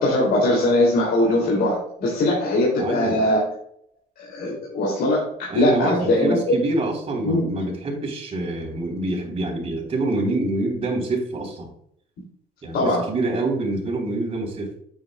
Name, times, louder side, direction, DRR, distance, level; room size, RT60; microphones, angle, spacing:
voice 1, 0.0-3.5 4.2-6.4 7.2-7.5 12.7-13.0, left 1 dB, 65° left, -4 dB, 2.9 m, -21 dB
voice 2, 2.8-3.2 5.5-11.7 12.6-14.7, right 2 dB, 35° right, 0 dB, 3.6 m, -26 dB
9.6 x 8.5 x 2.3 m, 0.67 s
cardioid pair, 110°, 17 cm